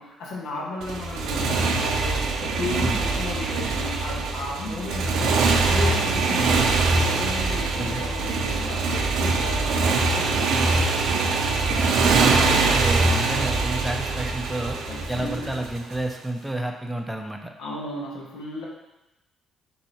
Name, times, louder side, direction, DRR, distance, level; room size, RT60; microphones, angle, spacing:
voice 1, 0.0-5.3 5.6-10.6 14.9-15.5 17.6-18.7, left 2 dB, 80° left, -2 dB, 1.0 m, -34 dB
Motorcycle, 0.8-16.0, right 3 dB, 85° right, 0.5 m, -23 dB
voice 2, 11.7-14.8 15.1-17.5, right 1 dB, 5° right, 3 dB, 0.4 m, -30 dB
4.3 x 2.8 x 4.1 m, 0.96 s
cardioid pair, 90°, 0 cm